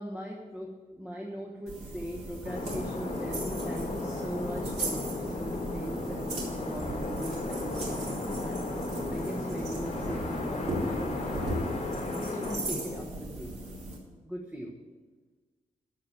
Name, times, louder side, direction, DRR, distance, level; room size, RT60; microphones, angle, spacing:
voice 1, 0.0-8.6 9.1-11.7 12.1-13.6 14.2-14.7, right 1 dB, 10° right, -1 dB, 1.3 m, -40 dB
sound 1, 1.7-14.0, right 1 dB, 60° right, 3.6 m, -38 dB
sound 2, 2.4-13.0, left 2 dB, 55° left, 3.1 m, -35 dB
14.0 x 5.1 x 8.7 m, 1.3 s
wide cardioid pair, 175°, 13 cm